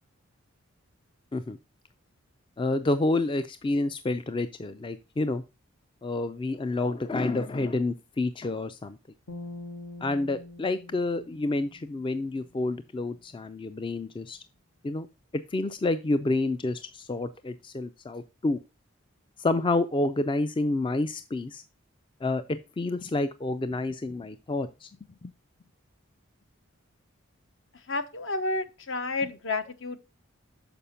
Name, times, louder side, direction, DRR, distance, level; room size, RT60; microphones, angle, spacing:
voice 1, 2.6-5.4 6.0-9.0 10.0-14.4 14.8-15.1 15.5-18.6 19.4-21.6 22.2-24.9 25.2-25.3, left 2 dB, 25° left, 0.3 m, -29 dB
sound 1, 9.3-12.6, left 2 dB, 80° left, 1.4 m, -44 dB
voice 2, 27.9-30.0, left 3 dB, 60° left, 0.9 m, -30 dB
6.9 x 5.0 x 5.6 m
head